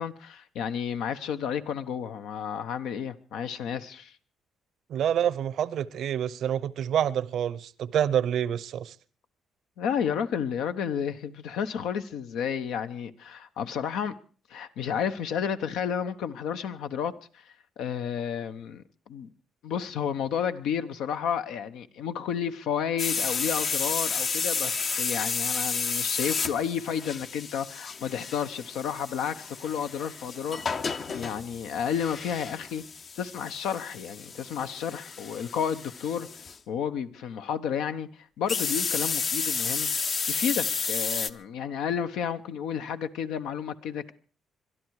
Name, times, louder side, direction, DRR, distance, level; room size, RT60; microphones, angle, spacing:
voice 1, 0.0-4.1 9.8-14.2 14.5-17.4 17.8-19.3 19.6-32.8 33.2-36.3 36.7-39.9 40.3-44.1, left 8 dB, 85° left, 1.0 m, -31 dB
voice 2, 4.9-9.0, right 9 dB, 70° right, 0.7 m, -27 dB
sound 1, 23.0-36.6 38.5-41.3, left 5 dB, 50° left, 0.8 m, -31 dB
22.5 x 12.0 x 4.8 m
cardioid pair, 85°, 0 cm